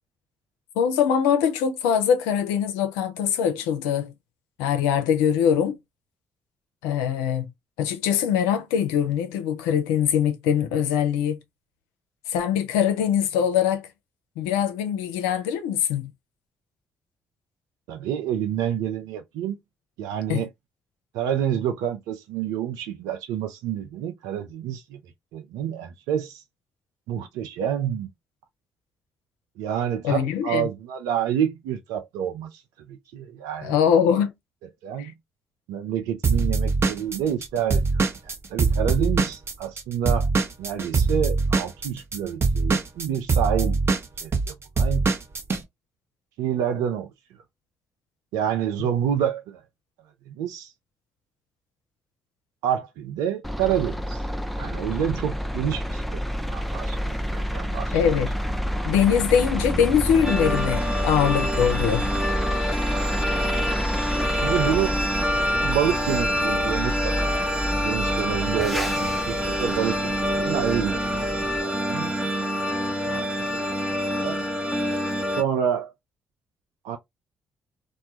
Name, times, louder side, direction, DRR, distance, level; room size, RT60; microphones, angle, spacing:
voice 1, 0.8-4.1 4.6-5.8 6.8-7.5 7.8-11.4 12.3-13.9 14.4-16.1 20.3-20.4 30.0-30.7 33.6-34.3 35.0-35.1 57.9-58.3 58.8-62.1, left 8 dB, 85° left, 0.4 m, -22 dB
voice 2, 17.9-19.6 20.0-20.5 21.1-25.0 25.3-26.4 27.1-28.1 29.6-32.6 32.9-33.8 34.8-35.1 35.7-37.8 38.5-40.3 40.6-43.8 44.2-45.1 46.4-47.1 48.3-49.6 50.3-50.7 52.6-54.2 54.6-56.2 56.5-57.9 64.4-65.0 65.6-67.4 67.8-71.1 71.6-72.3 73.1-73.2 73.5-73.6 74.2-74.4 75.4-75.9 76.8-77.0, right 9 dB, 80° right, 0.5 m, -28 dB
Drum kit / Drum, 36.2-39.8 40.1-45.6, right 4 dB, 45° right, 0.8 m, -22 dB
sound 1, 53.4-71.6, equal, ahead, 0.4 m, -29 dB
sound 2, 60.2-75.4, equal, 15° right, 0.8 m, -26 dB
2.2 x 2.2 x 2.7 m
hypercardioid pair, 45°, 6 cm